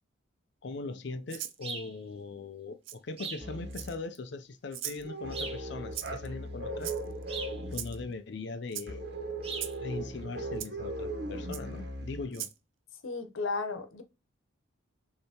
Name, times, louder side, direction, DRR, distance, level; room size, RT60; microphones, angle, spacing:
voice 1, 0.6-6.9 7.7-9.0 9.8-12.5, left 3 dB, 55° left, 0.5 m, -40 dB
Rattle (instrument), 1.3-1.6 2.8-3.0 3.7-4.2 4.7-5.0 5.9-6.3 6.8-7.2 7.7-8.0 8.7-8.9 9.6-9.8 10.6-10.7 11.5-11.6 12.3-12.6, right 12 dB, 75° right, 0.5 m, -39 dB
sound 1, 1.6-1.9 3.2-3.5 5.3-5.7 7.3-7.6 9.4-9.7, right 4 dB, 30° right, 0.8 m, -39 dB
sound 2, 3.4-4.0 5.0-8.1 8.9-12.3, right 1 dB, 55° right, 1.3 m, -38 dB
voice 2, 13.0-14.0, left 3 dB, 85° left, 0.9 m, -34 dB
6.6 x 2.8 x 2.8 m
head